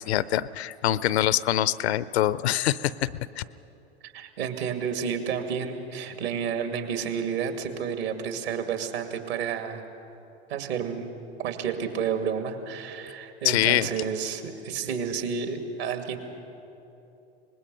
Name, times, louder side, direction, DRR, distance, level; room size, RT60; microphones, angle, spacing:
voice 1, 0.0-3.1 3.4-3.5 13.4-13.9, left 13 dB, 75° left, 18 dB, 0.6 m, -24 dB
voice 2, 4.0-9.8 10.5-11.1 11.4-16.2, right 7 dB, 70° right, 6 dB, 2.2 m, -30 dB
24.5 x 20.0 x 5.4 m, 3.0 s
hypercardioid pair, 85°, 33 cm